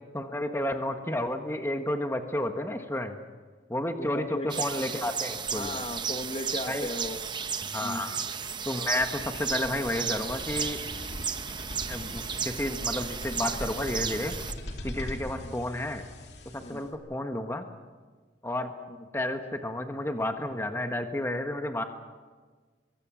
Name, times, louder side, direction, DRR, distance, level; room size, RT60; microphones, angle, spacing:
voice 1, 0.1-3.2 3.7-5.8 6.7-6.9 7.7-8.2 8.6-10.8 11.9-14.3 14.8-16.0 16.5-17.6 18.4-18.7 19.1-21.8, left 1 dB, 15° left, 5 dB, 1.3 m, -31 dB
voice 2, 4.0-4.6 5.5-7.3 7.8-8.0 15.4-15.5 16.6-16.8, left 1 dB, 30° left, 6 dB, 1.4 m, -36 dB
sound 1, 4.5-14.5, right 6 dB, 25° right, 0.8 m, -34 dB
sound 2, 8.7-16.9, left 1 dB, 65° left, 3.0 m, -41 dB
25.0 x 23.5 x 6.3 m, 1.4 s
head